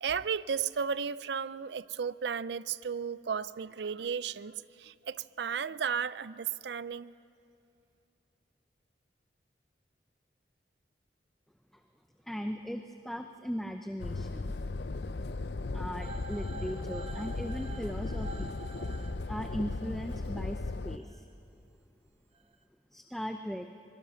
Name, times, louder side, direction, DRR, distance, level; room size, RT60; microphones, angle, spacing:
voice 1, 0.0-7.1, right 6 dB, 70° right, 0.4 m, -34 dB
voice 2, 12.2-14.5 15.7-18.6 19.3-21.3 22.9-23.7, equal, ahead, 0.6 m, -38 dB
sound 1, 14.0-21.0, left 3 dB, 65° left, 0.6 m, -36 dB
sound 2, 16.0-19.8 21.0-21.2, right 3 dB, 30° right, 1.1 m, -47 dB
25.0 x 22.5 x 6.4 m
head